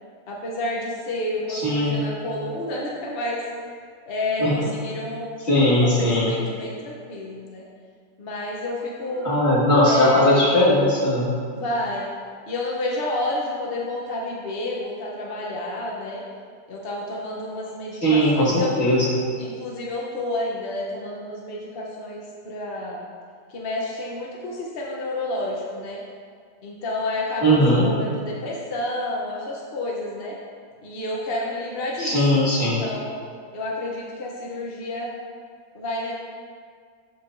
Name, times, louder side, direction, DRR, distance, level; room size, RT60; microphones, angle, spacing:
voice 1, 0.3-3.4 4.1-7.6 8.2-9.3 9.8-10.4 11.5-12.1 12.5-16.2 16.7-18.8 19.4-23.1 23.5-26.0 26.6-30.4 30.8-32.2 32.6-33.2 33.5-35.1 35.7-36.1, left 2 dB, 55° left, -3 dB, 0.6 m, -30 dB
voice 2, 1.5-2.0 4.4-4.5 5.5-6.4 9.2-11.3 18.0-19.1 27.4-27.8 32.0-32.8, equal, 35° left, -7 dB, 1.9 m, -19 dB
12.5 x 4.5 x 2.5 m, 2.1 s
omnidirectional pair, 1.9 m